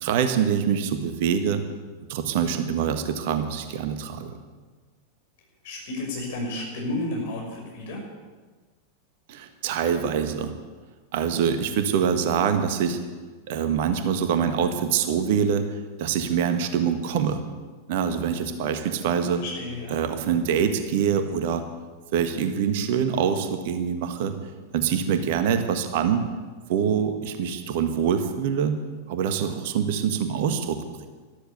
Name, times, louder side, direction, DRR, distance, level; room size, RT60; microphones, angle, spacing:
voice 1, 0.0-1.6 2.1-4.4 9.3-10.5 11.1-13.0 13.5-15.6 16.0-17.4 17.9-19.4 19.9-21.6 22.1-24.3 24.7-26.2 26.7-28.8 29.1-31.1, right 7 dB, 50° right, 8 dB, 1.5 m, -24 dB
voice 2, 5.6-8.0 19.4-19.9, left 2 dB, 50° left, 0 dB, 6.1 m, -32 dB
13.5 x 13.0 x 8.1 m, 1.4 s
figure-of-eight pair, 90°, 0 cm